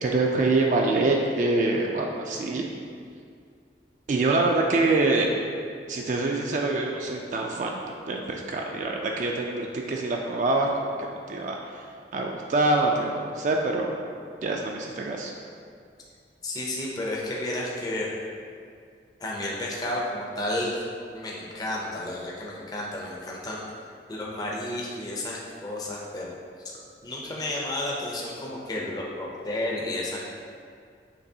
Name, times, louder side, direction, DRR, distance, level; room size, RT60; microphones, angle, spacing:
voice 1, 0.0-2.7 4.1-5.3 5.9-7.8 8.1-11.6 12.1-13.9 14.4-15.3, right 2 dB, 45° right, 0 dB, 0.3 m, -25 dB
voice 2, 16.4-18.1 19.2-20.8 21.1-23.6 24.1-26.4 26.6-30.3, left 1 dB, 20° left, -4 dB, 0.5 m, -32 dB
6.5 x 3.0 x 2.7 m, 2.2 s
head